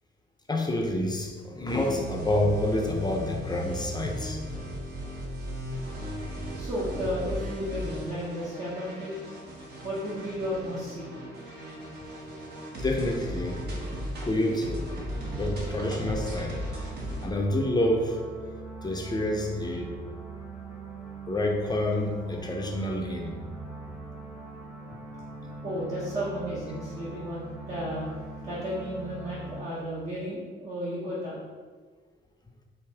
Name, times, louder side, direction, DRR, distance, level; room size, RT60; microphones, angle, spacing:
voice 1, 0.5-4.4 12.8-13.6 14.2-14.9 15.3-17.0 17.2-18.2 18.8-20.0 21.3-23.3 24.9-25.0, left 1 dB, 20° left, 1 dB, 0.6 m, -28 dB
sound 1, 1.6-17.3, equal, 55° right, 1.2 m, -37 dB
voice 2, 6.5-9.2 9.8-11.1 25.6-28.1 28.4-31.4, equal, 35° right, -7 dB, 1.1 m, -33 dB
sound 2, 15.1-29.6, right 4 dB, 10° right, 1.1 m, -41 dB
4.9 x 2.6 x 3.5 m, 1.5 s
cardioid pair, 90°, 20 cm